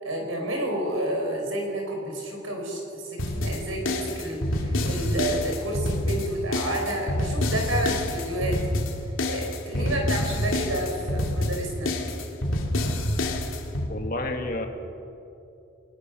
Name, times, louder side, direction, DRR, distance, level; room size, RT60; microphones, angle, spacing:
voice 1, 0.0-8.6 9.3-12.0, right 1 dB, 80° right, 1 dB, 5.0 m, -30 dB
sound 1, 3.2-13.9, left 1 dB, 80° left, 2.5 m, -27 dB
voice 2, 9.7-10.1 13.9-14.7, left 2 dB, 45° left, 4 dB, 1.9 m, -31 dB
23.0 x 20.5 x 6.3 m, 2.8 s
head